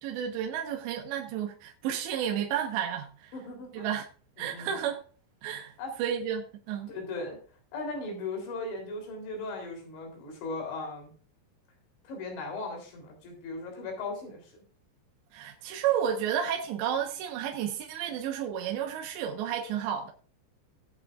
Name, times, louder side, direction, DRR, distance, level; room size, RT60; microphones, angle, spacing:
voice 1, 0.0-3.3 3.7-4.1 4.4-5.0 5.4-5.7 6.0-6.9 15.3-20.1, right 9 dB, 75° right, 3.4 m, -31 dB
voice 2, 3.3-3.9 4.4-4.8 5.8-5.9 6.9-7.4 7.7-11.1 12.0-14.6, left 3 dB, 75° left, 5.8 m, -37 dB
19.5 x 7.9 x 2.5 m
omnidirectional pair, 5.2 m